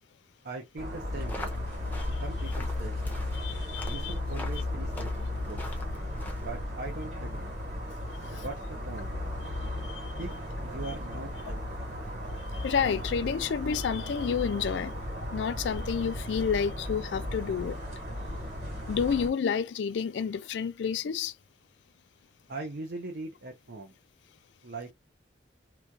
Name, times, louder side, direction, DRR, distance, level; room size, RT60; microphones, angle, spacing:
voice 1, 0.4-1.5 2.2-3.0 3.8-5.6 6.4-7.5 8.3-9.1 10.2-10.3 10.6-11.7 22.5-23.9 24.6-24.9, right 3 dB, 60° right, 0.6 m, -40 dB
sound 1, 0.8-19.3, left 1 dB, 40° right, 1.6 m, -35 dB
sound 2, 1.1-6.7, left 1 dB, 10° left, 0.6 m, -41 dB
voice 2, 3.3-4.1 8.3-8.4 9.9-10.1 12.5-14.9 15.3-17.8 18.9-21.3, left 6 dB, 70° left, 0.3 m, -30 dB
3.0 x 2.2 x 2.5 m
head